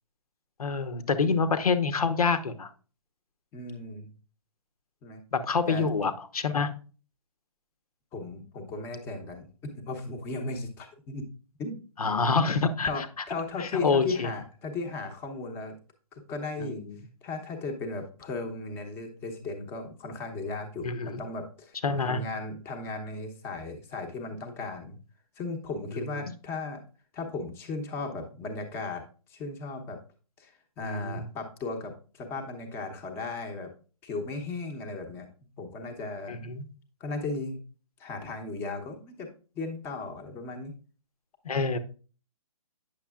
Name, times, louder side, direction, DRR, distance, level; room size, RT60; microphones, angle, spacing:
voice 1, 0.6-2.7 5.3-6.7 12.0-13.1 13.6-14.3 16.6-17.0 20.8-21.2 21.8-22.2 26.2-26.3 30.8-31.2 36.3-36.6 41.4-41.8, left 4 dB, 80° left, 10 dB, 1.0 m, -27 dB
voice 2, 3.5-4.1 5.0-5.2 5.7-5.9 8.1-11.3 11.6-11.8 12.8-15.7 16.2-16.8 17.2-25.0 25.4-26.8 27.1-29.0 29.3-30.0 30.4-33.7 34.0-35.3 35.6-36.3 37.0-37.6 38.0-39.3 39.6-40.7, left 3 dB, 10° left, 4 dB, 0.8 m, -36 dB
9.0 x 6.6 x 2.3 m, 0.36 s
hypercardioid pair, 160°, 19 cm